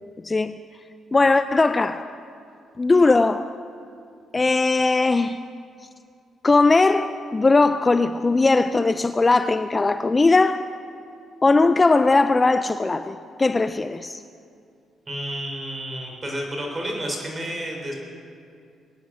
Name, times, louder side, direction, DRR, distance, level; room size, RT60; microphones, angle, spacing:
voice 1, 0.2-0.6 1.1-2.1 2.8-3.5 4.3-5.4 6.4-10.6 11.4-14.2, left 3 dB, 25° left, 11 dB, 0.4 m, -19 dB
voice 2, 15.1-17.9, equal, 25° right, 0 dB, 4.2 m, -30 dB
21.5 x 9.5 x 6.3 m, 2.4 s
cardioid pair, 90°, 0 cm